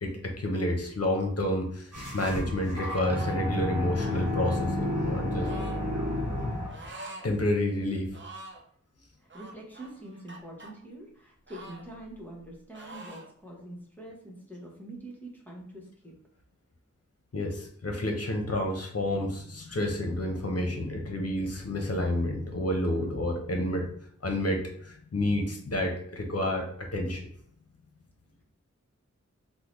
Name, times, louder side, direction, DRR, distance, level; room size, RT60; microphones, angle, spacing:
voice 1, 0.0-5.5 7.2-8.1 17.3-23.9 24.2-27.3, left 1 dB, 55° left, 2 dB, 0.7 m, -29 dB
sound 1, 1.9-6.9, left 1 dB, 90° right, 1.0 m, -31 dB
sound 2, 2.8-3.4 3.9-4.6 5.4-5.8 6.7-7.3 7.6-7.7 8.1-8.6 9.3-10.7 11.5-12.5 12.7-13.3, right 2 dB, 40° right, 0.6 m, -46 dB
voice 2, 9.2-16.1, right 1 dB, 5° left, -3 dB, 0.9 m, -45 dB
3.7 x 2.1 x 3.0 m, 0.62 s
wide cardioid pair, 45°, 30 cm